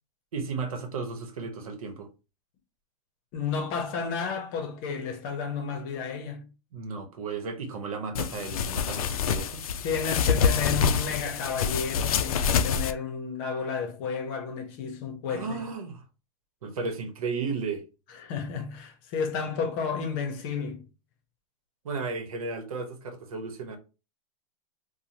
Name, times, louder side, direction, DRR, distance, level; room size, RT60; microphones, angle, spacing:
voice 1, 0.3-2.1 6.7-9.6 15.3-16.0 16.6-17.8 21.8-23.8, right 4 dB, 85° right, 0.9 m, -34 dB
voice 2, 3.3-6.5 9.8-15.7 18.2-20.8, left 5 dB, 40° left, 0.7 m, -32 dB
sound 1, 8.2-12.9, left 6 dB, 85° left, 0.4 m, -26 dB
3.0 x 2.1 x 2.6 m
supercardioid pair, 150°, 18 cm